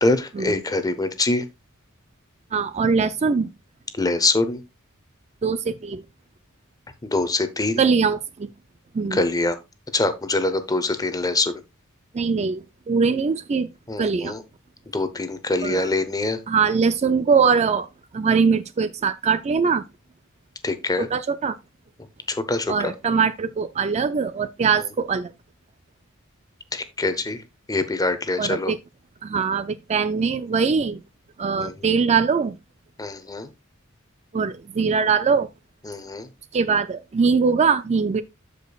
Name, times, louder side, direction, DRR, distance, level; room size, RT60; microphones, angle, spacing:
voice 1, 0.0-1.4 4.0-4.6 7.0-7.8 9.1-9.6 9.9-11.6 13.9-14.4 14.9-16.4 20.6-21.1 22.3-22.9 26.7-27.4 27.7-28.7 31.6-31.7 33.0-33.5 35.9-36.3, left 2 dB, 15° left, 0.8 m, -24 dB
voice 2, 2.5-3.5 5.4-6.0 7.8-8.5 8.9-9.2 12.1-13.7 14.0-14.3 15.6-15.9 16.5-17.9 18.1-19.8 21.0-21.6 22.7-25.3 28.4-28.8 29.2-31.0 31.4-32.6 34.3-35.5 36.5-38.2, right 5 dB, 30° right, 0.4 m, -22 dB
13.0 x 5.1 x 2.3 m
head